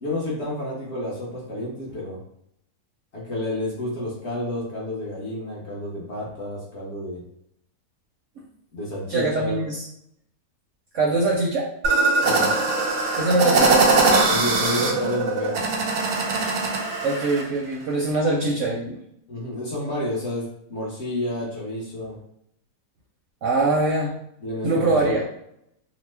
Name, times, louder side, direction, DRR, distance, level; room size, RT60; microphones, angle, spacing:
voice 1, 0.0-2.2 3.1-7.2 8.7-9.6 12.2-12.5 14.3-15.6 19.3-22.2 24.4-25.1, left 1 dB, 50° left, -5 dB, 0.9 m, -30 dB
voice 2, 9.1-9.9 10.9-11.7 13.2-13.9 17.0-19.0 23.4-24.1 24.6-25.2, right 2 dB, 65° right, -3 dB, 0.8 m, -23 dB
sound 1, 11.8-17.4, right 3 dB, 90° right, 1.2 m, -21 dB
2.9 x 2.0 x 3.2 m, 0.75 s
omnidirectional pair, 1.7 m